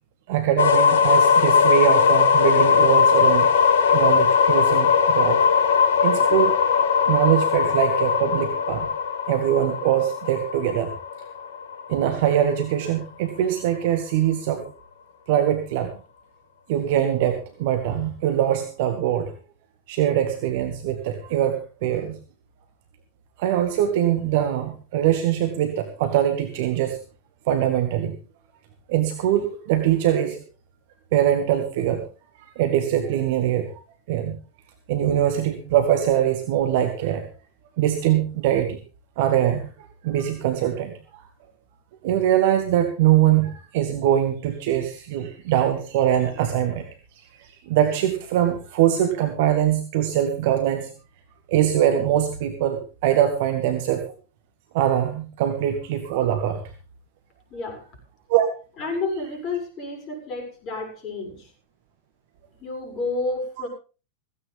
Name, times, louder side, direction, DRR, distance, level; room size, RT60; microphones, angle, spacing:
voice 1, 0.3-3.5 3.9-5.4 6.0-6.6 7.1-8.9 9.3-10.9 11.9-14.6 15.3-15.9 16.7-19.3 19.9-22.2 23.4-27.0 27.5-28.1 28.9-30.4 31.1-32.0 32.6-33.7 34.1-34.4 34.9-37.3 37.8-38.8 39.2-39.7 40.0-40.9 42.0-46.9 47.4-50.9 51.5-54.0 54.7-56.6 58.3-58.5, right 11 dB, 50° right, 6 dB, 1.9 m, -22 dB
sound 1, 0.6-12.4, left 6 dB, 55° left, 1.5 m, -19 dB
voice 2, 57.5-57.8 58.8-61.5 62.5-63.7, left 3 dB, 30° left, 4 dB, 7.0 m, -30 dB
16.5 x 15.5 x 3.5 m, 0.34 s
figure-of-eight pair, 90°, 0 cm